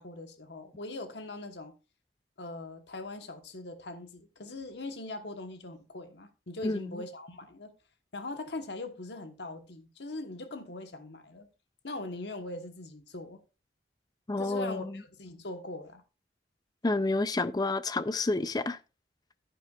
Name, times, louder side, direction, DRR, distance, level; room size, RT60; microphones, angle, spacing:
voice 1, 0.0-1.7 2.4-7.7 8.1-11.5 11.8-13.4 14.4-16.0, left 2 dB, 70° left, 1.2 m, -41 dB
voice 2, 6.6-7.0 14.3-14.9 16.8-18.8, left 2 dB, 20° left, 0.5 m, -29 dB
10.5 x 9.9 x 2.4 m
head